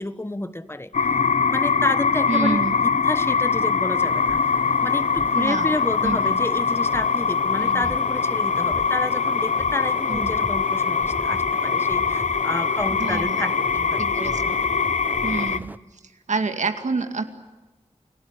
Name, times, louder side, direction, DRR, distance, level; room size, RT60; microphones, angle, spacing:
voice 1, 0.0-14.0 14.3-14.4, left 1 dB, 20° left, 13 dB, 1.3 m, -30 dB
sound 1, 0.9-15.6, left 5 dB, 80° left, 0.8 m, -22 dB
voice 2, 2.3-2.8 5.3-5.7 6.0-6.4 7.6-7.9 10.1-10.3 12.9-13.5 14.0-14.6 15.2-15.7 16.3-17.2, right 4 dB, 90° right, 7 dB, 2.3 m, -28 dB
sound 2, 4.0-15.8, right 1 dB, 15° right, 0.8 m, -39 dB
30.0 x 17.0 x 9.9 m, 1.2 s
wide cardioid pair, 65°, 12 cm